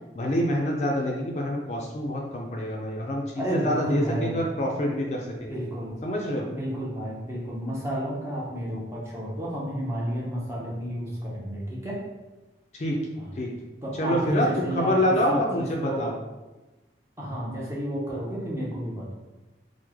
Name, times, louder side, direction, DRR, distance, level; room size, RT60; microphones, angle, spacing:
voice 1, 0.2-5.6 6.0-6.5 12.7-13.0 13.4-13.5 14.0-16.1, equal, 40° left, 0 dB, 0.4 m, -26 dB
voice 2, 3.4-4.4 5.5-6.0 6.5-12.0 13.2-13.3 13.8-16.0 17.2-19.1, equal, 15° right, -5 dB, 0.6 m, -31 dB
3.1 x 2.0 x 3.4 m, 1.1 s
head